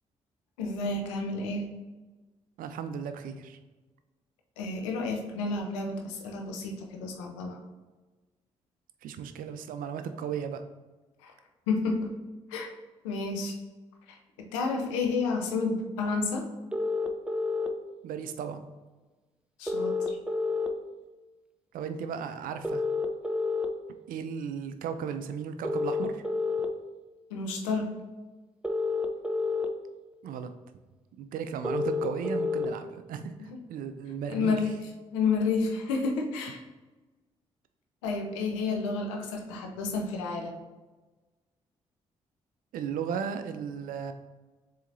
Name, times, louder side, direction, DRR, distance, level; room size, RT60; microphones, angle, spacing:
voice 1, 0.6-1.7 4.6-7.6 11.2-11.3 11.7-12.1 12.5-12.7 13.0-13.6 14.1-14.2 14.5-16.5 19.6-20.2 27.3-27.9 34.3-34.8 35.1-36.6 38.0-40.6, left 4 dB, 85° left, 2 dB, 0.6 m, -30 dB
voice 2, 2.6-3.6 9.0-10.6 18.0-18.6 21.7-22.8 24.1-26.2 30.2-30.5 31.2-34.7 39.9-40.0 42.7-44.1, right 7 dB, 65° right, 9 dB, 0.5 m, -35 dB
sound 1, 16.7-17.7 19.7-20.7 22.6-23.7 25.6-26.7 28.6-29.7 31.6-32.7, left 3 dB, 5° right, 0.6 m, -29 dB
7.1 x 2.9 x 2.6 m, 1.2 s
hypercardioid pair, 45°, 15 cm